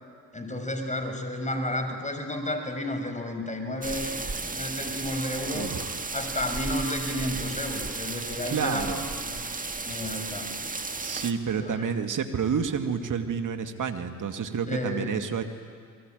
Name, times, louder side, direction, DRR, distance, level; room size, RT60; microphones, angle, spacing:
voice 1, 0.3-4.1 4.5-5.7 6.1-9.5 9.9-10.5 11.5-11.9 14.7-15.2, left 1 dB, 15° left, 6 dB, 6.1 m, -32 dB
sound 1, 3.8-11.3, right 3 dB, 20° right, 1.9 m, -34 dB
voice 2, 5.5-6.0 8.5-9.1 11.0-15.4, right 6 dB, 45° right, 7 dB, 2.4 m, -29 dB
28.0 x 22.0 x 9.4 m, 2.1 s
hypercardioid pair, 50°, 42 cm